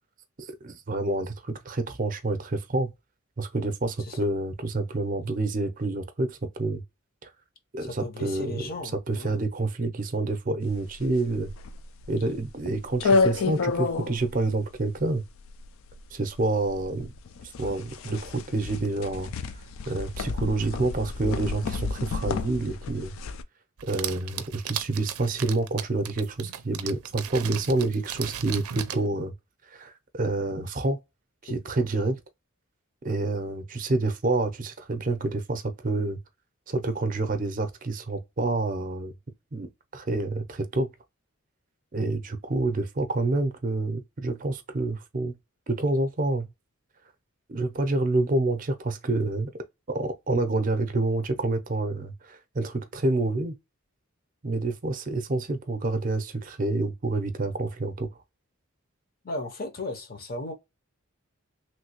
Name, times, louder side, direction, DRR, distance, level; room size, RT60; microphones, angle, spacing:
voice 1, 0.4-2.9 3.4-6.8 7.2-7.3 7.7-8.7 9.1-11.5 12.1-15.2 16.1-17.1 17.6-19.3 19.9-23.1 23.9-29.3 29.7-31.0 31.4-32.2 33.0-36.2 36.7-39.1 39.5-40.9 41.9-45.3 45.7-46.5 47.5-49.5 49.9-53.5 54.4-58.1, right 2 dB, 35° right, 0.5 m, -28 dB
voice 2, 7.8-9.4 31.5-31.6 32.0-32.1 59.2-60.5, left 2 dB, 40° left, 0.7 m, -36 dB
sound 1, 10.7-23.4, left 4 dB, 70° left, 0.3 m, -30 dB
sound 2, 23.8-29.0, right 10 dB, 90° right, 0.5 m, -37 dB
3.1 x 2.7 x 2.9 m
head